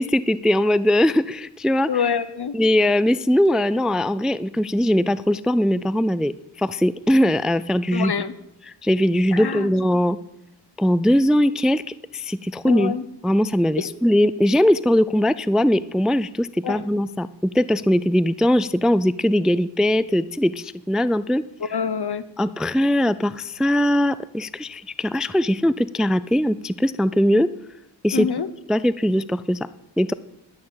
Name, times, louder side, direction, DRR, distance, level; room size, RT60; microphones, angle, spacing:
voice 1, 0.0-1.9 2.5-6.3 6.6-8.1 8.8-10.2 10.8-11.8 12.1-13.0 13.2-21.4 22.4-27.5 28.0-28.3 28.7-29.6 30.0-30.1, equal, ahead, 16 dB, 0.3 m, -20 dB
voice 2, 1.9-2.5 7.9-8.3 9.3-9.7 12.6-13.0 13.8-13.9 16.6-16.8 21.6-22.2 28.1-28.5, left 6 dB, 65° left, 14 dB, 0.9 m, -26 dB
11.5 x 6.6 x 8.7 m, 0.83 s
cardioid pair, 40°, 43 cm